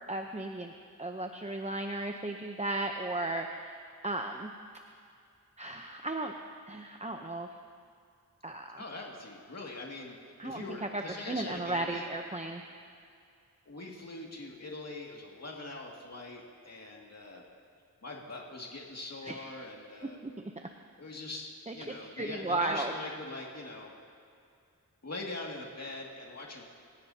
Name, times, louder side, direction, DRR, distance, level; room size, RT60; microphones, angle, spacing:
voice 1, 0.1-3.8 4.0-4.5 5.6-6.3 6.7-7.5 8.4-8.8 10.4-12.6 19.2-19.5 20.2-20.5 21.7-22.9, right 2 dB, 20° right, 3 dB, 0.8 m, -35 dB
voice 2, 8.8-10.2 10.4-12.1 13.7-17.4 18.0-20.2 21.0-23.9 25.0-26.6, left 2 dB, 50° left, -2 dB, 2.4 m, -43 dB
27.0 x 16.0 x 2.9 m, 2.5 s
wide cardioid pair, 80°, 33 cm